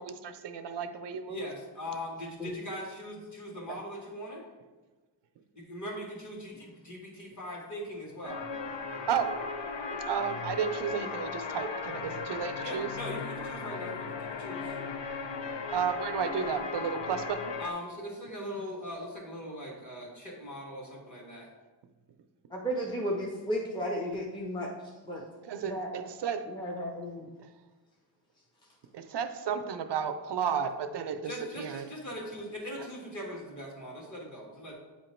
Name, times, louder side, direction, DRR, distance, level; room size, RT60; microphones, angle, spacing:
voice 1, 0.0-1.4 3.5-3.8 9.1-9.4 9.9-12.9 15.7-17.5 25.5-26.4 28.9-31.8, right 7 dB, 70° right, 8 dB, 0.5 m, -33 dB
voice 2, 1.3-4.4 5.5-8.4 12.6-14.8 17.6-21.5 31.2-34.7, equal, 40° left, -2 dB, 1.5 m, -40 dB
sound 1, 8.2-17.7, left 5 dB, 80° left, 0.6 m, -37 dB
voice 3, 22.5-24.7 25.0-25.2 25.6-25.9 26.5-27.2, equal, 10° left, -3 dB, 0.6 m, -34 dB
8.2 x 2.9 x 4.3 m, 1.2 s
wide cardioid pair, 175°, 43 cm